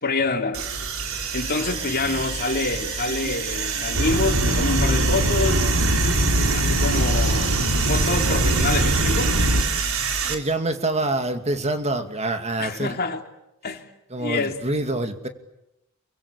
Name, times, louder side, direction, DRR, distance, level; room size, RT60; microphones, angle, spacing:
voice 1, 0.0-0.6 1.3-5.7 6.5-7.5 7.8-9.4 12.6-13.2 13.6-13.8 14.2-14.6, left 3 dB, 45° left, 3.2 m, -26 dB
sound 1, 0.5-10.4, right 6 dB, 70° right, 4.3 m, -27 dB
sound 2, 3.9-9.6, equal, 90° right, 4.4 m, -22 dB
voice 2, 10.3-13.0 14.1-15.3, right 2 dB, 30° right, 2.4 m, -26 dB
28.5 x 24.0 x 8.6 m
head